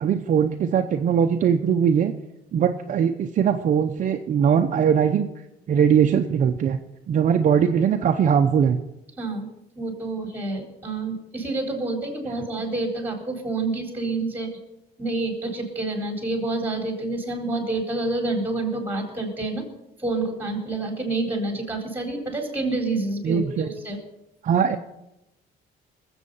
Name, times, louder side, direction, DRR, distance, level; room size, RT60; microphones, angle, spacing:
voice 1, 0.0-2.1 2.5-5.3 5.7-6.8 7.1-8.8 23.2-23.7 24.4-24.8, right 7 dB, 50° right, 5 dB, 0.8 m, -20 dB
voice 2, 9.2-9.5 9.8-14.5 15.0-19.7 20.0-24.0, right 2 dB, 10° right, 3 dB, 4.2 m, -28 dB
20.0 x 8.1 x 5.6 m, 0.92 s
cardioid pair, 110°, 17 cm